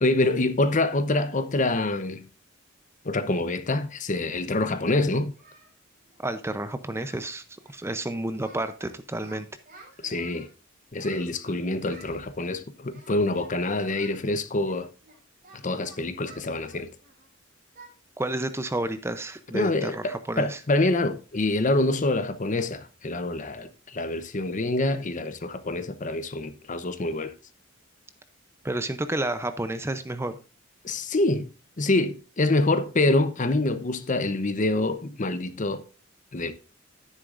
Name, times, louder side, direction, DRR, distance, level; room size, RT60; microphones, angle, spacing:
voice 1, 0.0-2.3 3.0-5.3 10.0-10.5 10.9-14.9 15.5-16.9 19.5-27.3 30.8-31.5 31.8-35.8 36.3-36.5, left 2 dB, 40° left, 0.8 m, -26 dB
Singing, 4.9-5.7 6.0-6.2 6.5-6.6 6.9-7.3 7.5-7.8 8.0-8.9 9.2-10.5 11.0-12.2 12.9-13.5 13.8-14.2 14.6-17.3 17.7-17.9 18.3-18.5 18.9-19.0 19.5-19.7, right 3 dB, 40° right, 5.3 m, -52 dB
voice 2, 6.2-7.4 7.7-9.5 18.2-20.6 28.6-30.4, right 1 dB, 15° right, 0.6 m, -30 dB
11.0 x 9.9 x 2.5 m
head